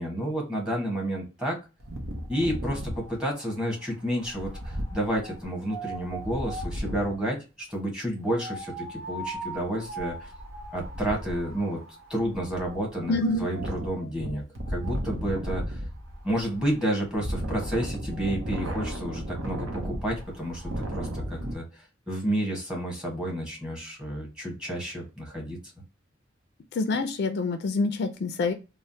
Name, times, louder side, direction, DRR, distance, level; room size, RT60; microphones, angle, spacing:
voice 1, 0.0-1.6 2.3-10.3 10.7-11.8 12.1-14.4 14.7-15.9 16.2-25.6, right 1 dB, 5° right, -2 dB, 1.1 m, -30 dB
Wind, 1.8-7.2 8.3-21.5, right 1 dB, 70° right, 0.7 m, -35 dB
voice 2, 13.1-13.4 26.8-28.5, left 3 dB, 55° left, 7 dB, 0.4 m, -26 dB
3.2 x 2.1 x 2.6 m, 0.29 s
head